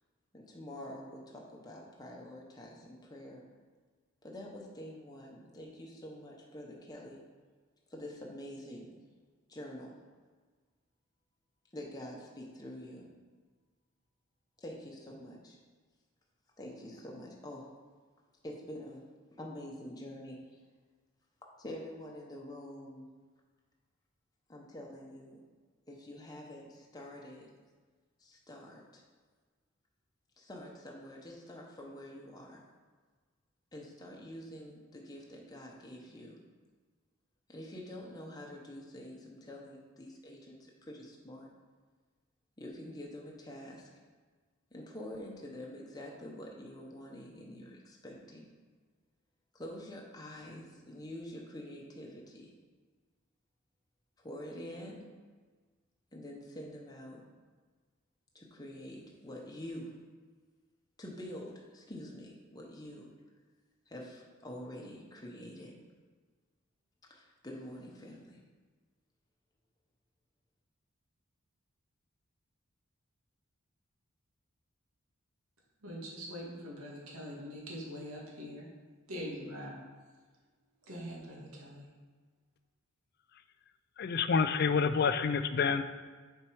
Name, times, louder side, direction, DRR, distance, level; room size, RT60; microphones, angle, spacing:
voice 1, 0.3-3.4 4.2-7.2 7.9-8.9 9.5-9.9 11.7-13.1 14.6-15.6 16.6-17.7 18.4-19.0 19.4-20.4 21.6-23.1 24.5-25.4 25.9-27.5 28.2-29.0 30.4-32.6 33.7-36.4 37.5-41.5 42.6-43.9 44.7-48.5 49.5-52.5 54.2-55.1 56.1-57.2 58.3-59.9 61.0-63.1 63.9-65.7 67.1-68.4, left 1 dB, 20° left, 0.9 m, -46 dB
voice 2, 75.8-78.7 79.1-79.8 80.9-81.9, equal, 90° right, 2.1 m, -43 dB
voice 3, 84.0-85.8, left 5 dB, 45° left, 0.3 m, -28 dB
7.4 x 4.5 x 4.6 m
head